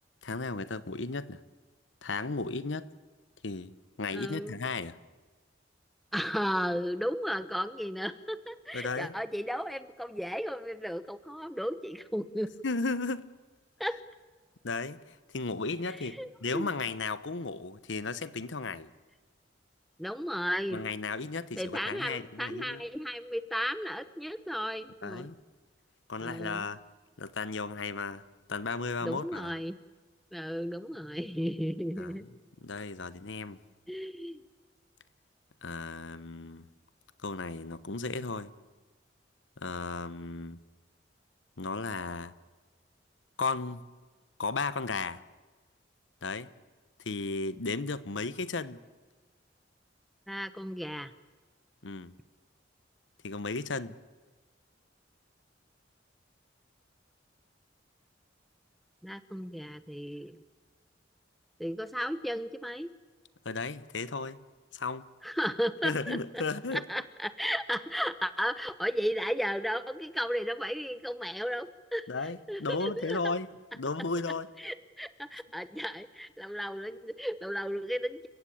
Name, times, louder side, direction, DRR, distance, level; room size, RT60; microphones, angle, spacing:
voice 1, 0.2-1.4 2.0-2.9 3.4-3.7 4.0-4.9 8.7-9.1 12.6-13.2 14.6-18.9 20.7-22.8 25.0-25.4 26.1-26.8 27.2-28.2 28.5-29.5 32.0-32.1 32.6-33.6 35.6-36.7 37.2-38.5 39.6-40.6 41.6-42.3 43.4-43.8 44.4-45.2 46.2-46.5 47.0-48.8 51.8-52.1 53.2-53.9 63.4-64.4 64.7-65.1 65.8-66.9 72.1-74.5, left 3 dB, 80° left, 1.0 m, -35 dB
voice 2, 4.1-4.5 6.1-12.5 13.8-14.0 15.9-16.7 20.0-20.8 21.6-25.3 26.2-26.7 29.0-29.8 30.3-32.2 33.9-34.4 50.3-51.1 59.0-60.4 61.6-62.9 65.2-66.4 66.7-72.1 72.5-73.3 74.6-78.3, equal, ahead, 0.9 m, -34 dB
29.5 x 16.0 x 8.6 m
head